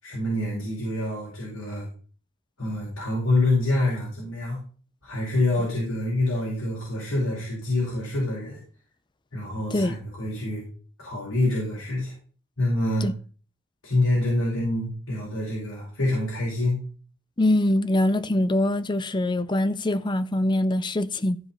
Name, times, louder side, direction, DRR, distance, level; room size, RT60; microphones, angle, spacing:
voice 1, 0.0-1.9 2.6-4.6 5.0-8.6 9.3-10.6 11.0-12.1 12.6-13.1 13.8-16.8, left 2 dB, 90° left, 5.2 m, -26 dB
voice 2, 17.4-21.4, left 1 dB, 20° left, 0.5 m, -23 dB
15.5 x 5.1 x 4.4 m
head